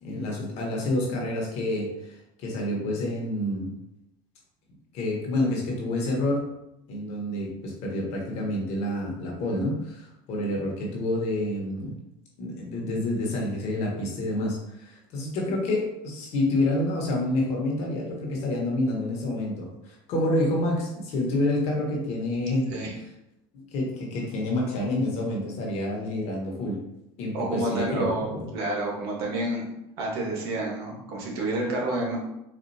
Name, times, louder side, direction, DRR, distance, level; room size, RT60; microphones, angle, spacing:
voice 1, 0.0-3.7 4.9-6.5 6.9-12.0 12.4-22.7 23.5-26.8 27.2-28.5, left 1 dB, 60° left, -1 dB, 1.2 m, -28 dB
voice 2, 27.3-29.6 30.0-32.2, right 2 dB, 85° right, -1 dB, 1.2 m, -29 dB
4.3 x 2.6 x 2.7 m, 0.85 s
supercardioid pair, 125°, 13 cm